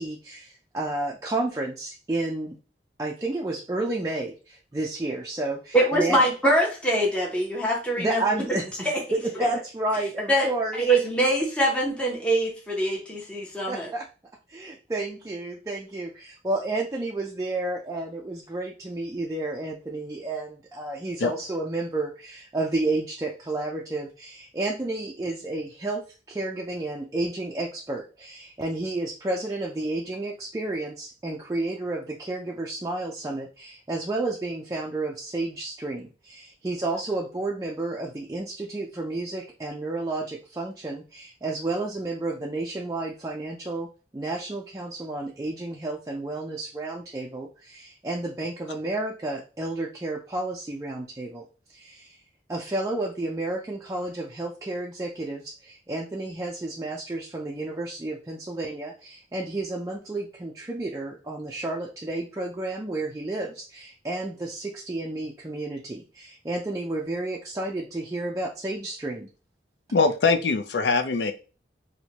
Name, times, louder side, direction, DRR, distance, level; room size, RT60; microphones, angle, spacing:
voice 1, 0.0-2.6 3.0-6.2 8.0-8.7 9.1-10.8 13.7-14.1 14.5-43.9 44.1-52.2 52.5-69.3, right 2 dB, 20° right, -1 dB, 0.3 m, -31 dB
voice 2, 5.7-8.2 8.8-9.0 10.3-10.5 10.8-13.9, right 1 dB, 5° left, -3 dB, 0.7 m, -23 dB
voice 3, 69.9-71.3, left 4 dB, 75° left, 8 dB, 0.4 m, -22 dB
4.4 x 2.2 x 2.8 m, 0.34 s
head